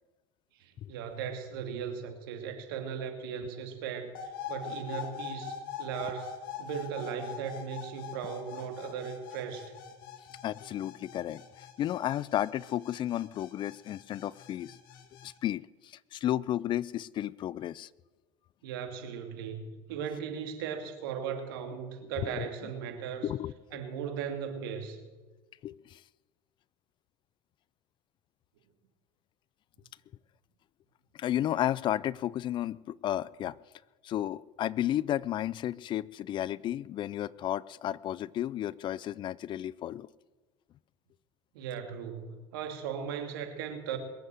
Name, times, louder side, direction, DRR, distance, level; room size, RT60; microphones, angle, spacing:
voice 1, 0.6-4.1 4.5-9.7 18.6-23.3 23.7-25.0 41.5-44.0, right 7 dB, 85° right, 5 dB, 2.4 m, -37 dB
sound 1, 4.1-15.3, left 8 dB, 85° left, 2.0 m, -43 dB
voice 2, 10.4-14.7 15.2-17.9 22.2-22.5 23.2-23.5 25.6-26.0 31.1-33.6 34.0-40.1, left 12 dB, 45° left, 22 dB, 0.4 m, -33 dB
21.5 x 8.0 x 7.7 m, 1.3 s
supercardioid pair, 95°, 12 cm